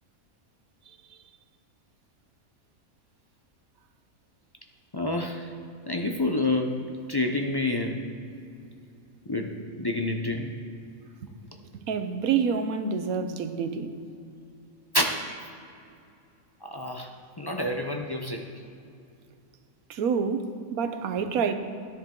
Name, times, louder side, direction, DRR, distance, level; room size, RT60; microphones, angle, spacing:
voice 1, 4.9-5.5 5.9-6.8 7.1-8.0 9.3-10.5 14.9-15.1 16.6-18.5, left 2 dB, 40° left, 0.3 m, -28 dB
voice 2, 11.7-14.0 19.9-21.5, right 6 dB, 90° right, 1.2 m, -28 dB
13.5 x 10.0 x 3.8 m
omnidirectional pair, 1.5 m